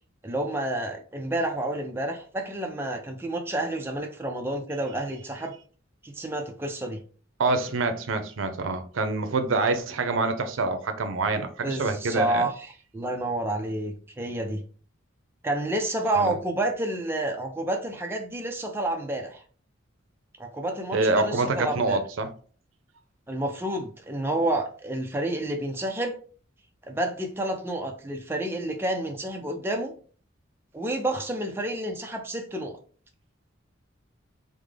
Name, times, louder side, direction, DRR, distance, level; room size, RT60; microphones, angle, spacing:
voice 1, 0.2-5.5 6.0-7.0 11.6-12.7 12.9-14.6 15.4-19.4 20.4-22.0 23.3-26.2 26.9-29.9 30.7-32.8, right 1 dB, 10° right, 0.4 m, -29 dB
voice 2, 7.4-12.5 16.2-16.3 20.9-22.3, right 3 dB, 85° right, 0.5 m, -26 dB
3.5 x 2.0 x 3.2 m
head